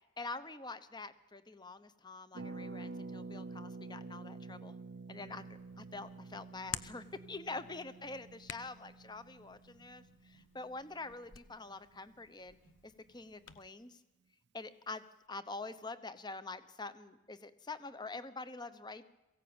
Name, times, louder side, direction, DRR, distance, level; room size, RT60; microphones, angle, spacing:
voice 1, 0.2-4.8 5.1-12.6 12.8-14.0 14.5-19.0, left 3 dB, 20° left, 12 dB, 1.0 m, -46 dB
Harp, 2.3-12.0 12.2-12.3 12.5-12.8, right 3 dB, 60° right, 0.6 m, -49 dB
Hands, 5.2-13.7, left 9 dB, 90° left, 0.8 m, -51 dB
22.5 x 16.0 x 8.9 m, 1.0 s
head